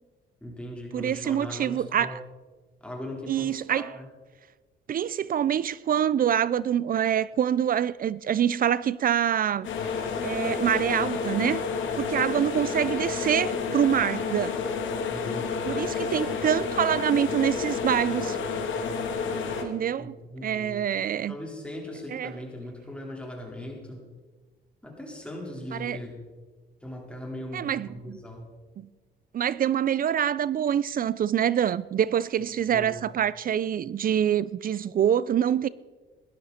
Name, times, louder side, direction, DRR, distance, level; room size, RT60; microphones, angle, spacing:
voice 1, 0.4-2.2 2.8-4.1 15.1-15.7 20.0-20.8 21.3-24.0 24.8-26.2 26.8-28.4 32.7-32.9, left 1 dB, 5° left, 4.2 m, -39 dB
voice 2, 0.9-2.2 3.3-3.9 4.9-9.7 10.2-11.6 12.0-14.5 15.7-18.4 19.6-20.1 20.4-21.4 22.1-22.3 25.7-26.0 27.5-28.2 28.8-28.9 29.3-35.7, right 9 dB, 45° right, 0.4 m, -25 dB
sound 1, 9.6-19.6, left 5 dB, 75° left, 2.1 m, -30 dB
17.5 x 12.0 x 4.3 m
cardioid pair, 90°, 20 cm